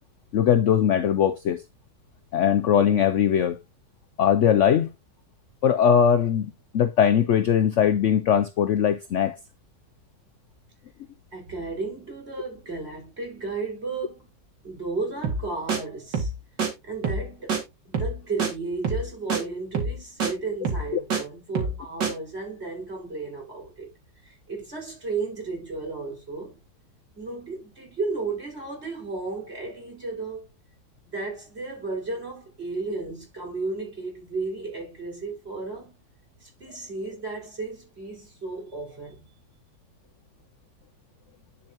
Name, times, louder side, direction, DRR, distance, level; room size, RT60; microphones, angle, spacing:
voice 1, 0.3-1.6 2.3-3.6 4.2-4.9 5.6-9.4, left 8 dB, 70° left, 0.7 m, -20 dB
voice 2, 11.3-14.3 14.6-16.3 16.9-17.6 17.9-23.9 24.3-26.5 27.2-30.4 31.1-35.9 36.4-39.2, right 3 dB, 35° right, 5.2 m, -33 dB
sound 1, 15.2-15.4 15.7-15.8 16.1-16.3 16.6-16.7 17.0-17.2 17.5-17.6 17.9-18.1 18.4-18.5 18.8-19.0 19.3-19.4 19.7-19.9 20.2-20.3 20.6-21.2 21.5-21.8 22.0-22.1, right 4 dB, 80° right, 2.9 m, -26 dB
10.5 x 5.7 x 2.9 m
omnidirectional pair, 1.9 m